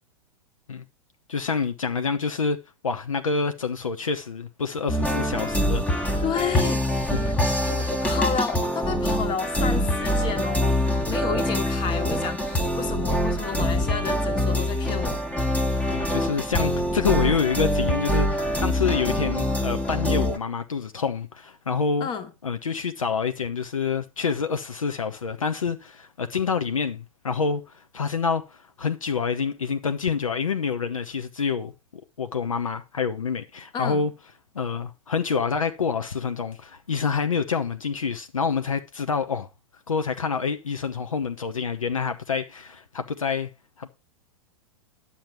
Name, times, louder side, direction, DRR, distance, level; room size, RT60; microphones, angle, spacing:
voice 1, 1.3-6.2 7.1-7.9 15.9-22.1 22.4-31.7 32.2-34.1 34.5-39.5 39.9-43.5 43.8-43.9, left 5 dB, 70° left, 0.9 m, -27 dB
sound 1, 4.9-20.4, left 1 dB, 10° left, 1.3 m, -24 dB
voice 2, 6.2-7.1 7.7-15.2 22.0-22.3 33.7-34.0, left 6 dB, 25° left, 1.5 m, -31 dB
10.5 x 7.4 x 4.4 m
figure-of-eight pair, 100°, 18 cm